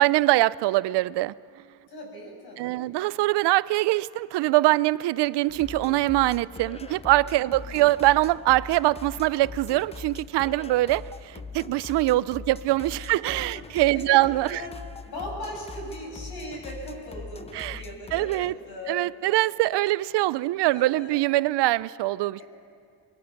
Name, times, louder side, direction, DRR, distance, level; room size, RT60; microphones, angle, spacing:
voice 1, 0.0-1.3 2.6-14.6 17.5-17.8 18.1-18.5 18.9-22.4, right 17 dB, 85° right, 0.5 m, -23 dB
voice 2, 1.9-2.9 7.4-7.9 13.1-13.2 13.5-13.6 13.9-14.2 14.5-14.8 15.0-19.1 20.7-21.2 22.4-22.5, equal, 65° left, 6.5 m, -39 dB
sound 1, 5.5-18.6, left 5 dB, 15° left, 0.4 m, -41 dB
23.5 x 20.0 x 5.9 m
cardioid pair, 120°, 40 cm